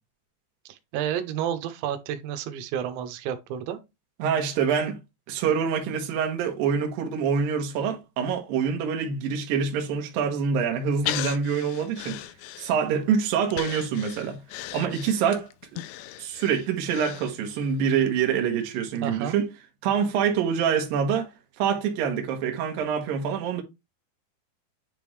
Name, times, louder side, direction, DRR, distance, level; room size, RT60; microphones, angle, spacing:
voice 1, 0.7-3.8 19.0-19.3, right 10 dB, 85° right, 3.2 m, -31 dB
voice 2, 4.2-5.0 5.3-12.2 12.6-14.4 14.7-15.8 16.2-19.5 19.8-21.3 21.6-23.6, right 7 dB, 65° right, 2.5 m, -26 dB
Breathing, 11.1-13.0 13.5-17.7 18.1-18.2, left 15 dB, 85° left, 2.5 m, -36 dB
9.9 x 3.4 x 3.2 m
omnidirectional pair, 5.2 m